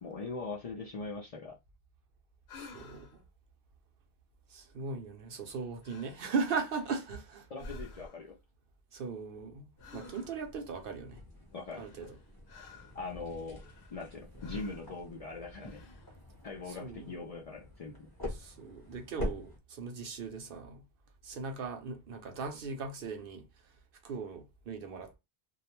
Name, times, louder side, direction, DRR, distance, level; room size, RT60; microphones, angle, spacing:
voice 1, 0.0-1.6 7.5-8.4 11.5-11.9 12.9-13.6 13.9-15.8 16.4-18.1, left 3 dB, 50° left, 0.4 m, -41 dB
sound 1, 2.5-3.2 5.3-5.6 5.8-6.3 6.7-7.2 7.6-8.3 9.8-10.5 11.7-13.0 13.5-14.1 14.4-14.9 15.5-16.1, left 3 dB, 85° left, 0.9 m, -51 dB
voice 2, 2.6-3.2 4.5-7.5 8.9-11.2 11.8-12.2 16.7-17.1 18.3-20.8 21.2-23.4 24.0-25.2, right 4 dB, 65° right, 0.8 m, -38 dB
sound 2, 9.8-19.6, left 1 dB, 25° left, 0.9 m, -45 dB
2.3 x 2.1 x 2.9 m
omnidirectional pair, 1.1 m